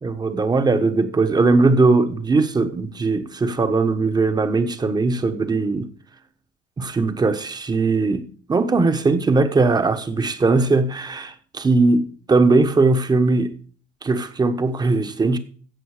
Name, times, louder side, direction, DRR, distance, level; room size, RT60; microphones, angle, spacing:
voice 1, 0.0-5.9 6.8-8.2 8.5-13.5 14.0-15.4, right 3 dB, 25° right, 1.2 m, -19 dB
15.5 x 5.6 x 5.0 m
cardioid pair, 110°, 17 cm